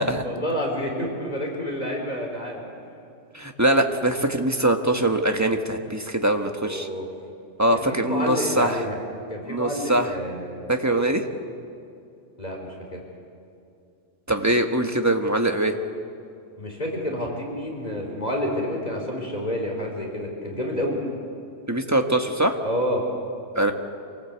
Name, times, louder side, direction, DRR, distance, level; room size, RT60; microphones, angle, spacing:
voice 1, 0.2-2.6 6.6-7.1 7.7-9.0 9.3-10.7 12.4-13.0 16.6-21.0 22.6-23.0, equal, 35° left, 0 dB, 4.2 m, -29 dB
voice 2, 3.3-6.9 7.6-8.8 9.5-10.1 10.7-11.2 14.3-15.7 21.7-22.6 23.5-23.7, right 1 dB, 15° right, 4 dB, 1.4 m, -22 dB
27.0 x 18.5 x 8.2 m, 2.6 s
omnidirectional pair, 1.3 m